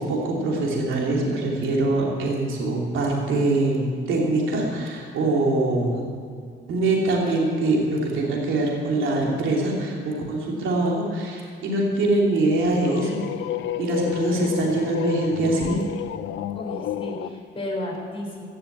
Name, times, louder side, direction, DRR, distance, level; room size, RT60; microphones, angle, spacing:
voice 1, 0.0-6.1 6.7-13.2 13.8-15.8, right 2 dB, 80° right, -2 dB, 3.0 m, -23 dB
sound 1, 12.5-17.4, left 12 dB, 70° left, 0.6 m, -31 dB
voice 2, 16.5-18.5, left 1 dB, 30° left, -2 dB, 4.6 m, -33 dB
16.5 x 6.9 x 8.7 m, 2.2 s
cardioid pair, 90°, 20 cm